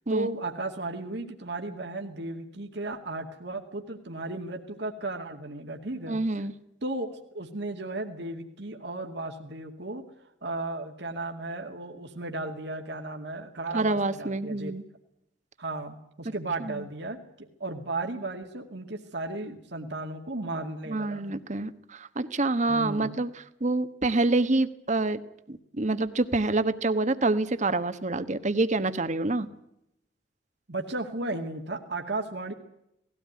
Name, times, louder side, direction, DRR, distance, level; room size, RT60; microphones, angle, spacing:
voice 1, 0.1-6.2 6.8-14.7 15.6-21.3 22.7-23.2 30.7-32.5, right 2 dB, 65° right, 3 dB, 2.3 m, -35 dB
voice 2, 6.1-6.5 13.7-14.8 16.6-16.8 20.9-23.3 23.6-25.2 25.5-29.5, right 2 dB, 40° right, 12 dB, 1.2 m, -27 dB
19.5 x 16.5 x 9.5 m, 0.80 s
head